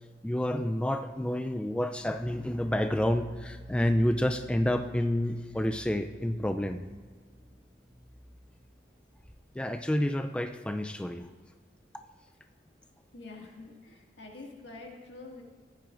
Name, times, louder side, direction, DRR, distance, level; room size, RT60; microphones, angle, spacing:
voice 1, 0.2-6.8 9.5-11.3, left 1 dB, 5° left, 6 dB, 0.3 m, -29 dB
sound 1, 1.9-9.6, equal, 20° right, 1.5 m, -51 dB
voice 2, 13.1-15.4, left 3 dB, 85° left, -1 dB, 2.0 m, -46 dB
15.0 x 11.0 x 2.5 m, 1.5 s
head